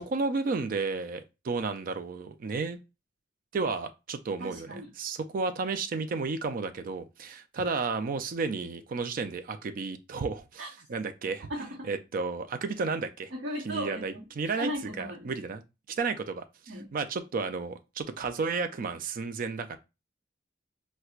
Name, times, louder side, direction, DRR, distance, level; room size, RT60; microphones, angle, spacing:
voice 1, 0.0-2.8 3.5-10.6 10.9-11.5 11.8-13.3 13.6-14.7 15.0-15.6 15.9-19.8, right 4 dB, 50° right, 0.4 m, -32 dB
voice 2, 4.4-4.9 10.6-10.7 11.5-11.9 13.3-14.2 14.6-15.3 16.7-16.9, equal, 70° right, 0.9 m, -36 dB
4.3 x 2.1 x 2.4 m
head